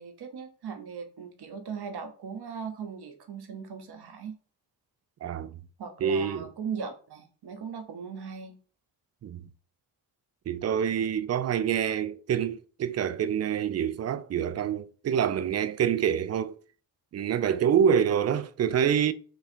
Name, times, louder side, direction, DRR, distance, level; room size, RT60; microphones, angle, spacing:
voice 1, 0.0-4.3 5.8-8.5, right 6 dB, 60° right, 1.0 m, -38 dB
voice 2, 5.2-5.6 6.0-6.5 9.2-9.4 10.5-16.6 17.1-19.1, right 8 dB, 35° right, 0.4 m, -26 dB
3.5 x 2.4 x 4.4 m
hypercardioid pair, 40°, 45 cm